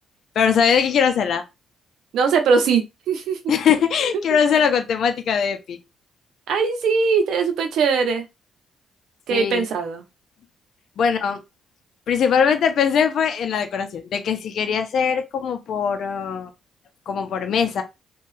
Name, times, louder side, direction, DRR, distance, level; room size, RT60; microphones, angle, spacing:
voice 1, 0.4-1.4 3.5-5.8 9.3-9.7 11.0-11.4 12.1-16.5 17.1-17.8, left 7 dB, 65° left, 0.6 m, -21 dB
voice 2, 2.1-3.4 6.5-8.2 9.3-10.0, right 5 dB, 75° right, 0.7 m, -20 dB
2.7 x 2.3 x 3.2 m
cardioid pair, 90°, 0 cm